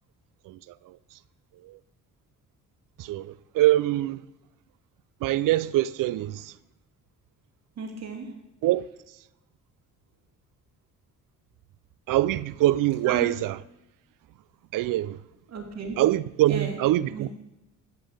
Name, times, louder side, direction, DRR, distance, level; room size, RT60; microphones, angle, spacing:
voice 1, 0.4-1.2 1.5-1.8 3.0-4.2 5.2-6.6 8.6-9.2 12.1-13.6 14.7-15.2 16.0-17.3, right 15 dB, 75° right, 0.5 m, -25 dB
voice 2, 7.8-8.3 13.1-13.3 15.5-16.0 16.5-16.8 17.1-17.3, right 4 dB, 55° right, 2.6 m, -33 dB
12.5 x 5.5 x 7.7 m
cardioid pair, 115°, 32 cm